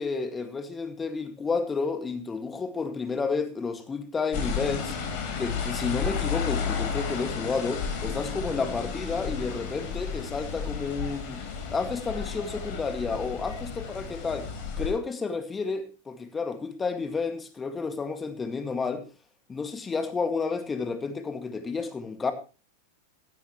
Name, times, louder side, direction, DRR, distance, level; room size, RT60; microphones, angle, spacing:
voice 1, 0.0-5.0 5.4-11.4 11.7-14.5 14.8-19.0 19.5-22.3, left 4 dB, 15° left, 2.0 m, -31 dB
sound 1, 4.3-14.9, left 6 dB, 45° left, 4.1 m, -32 dB
15.5 x 11.5 x 3.1 m
figure-of-eight pair, 90°, 0 cm